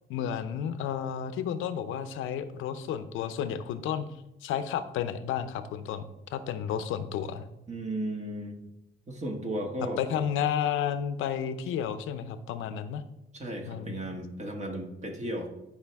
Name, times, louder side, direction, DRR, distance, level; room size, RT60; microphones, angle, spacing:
voice 1, 0.1-4.1 4.4-6.0 6.3-7.5 10.0-13.0 13.7-14.0, left 8 dB, 90° left, 11 dB, 0.7 m, -32 dB
voice 2, 7.7-8.6 9.1-10.0 13.3-15.5, right 1 dB, 35° right, 2 dB, 1.8 m, -35 dB
11.5 x 5.0 x 3.5 m, 0.88 s
cardioid pair, 90°, 20 cm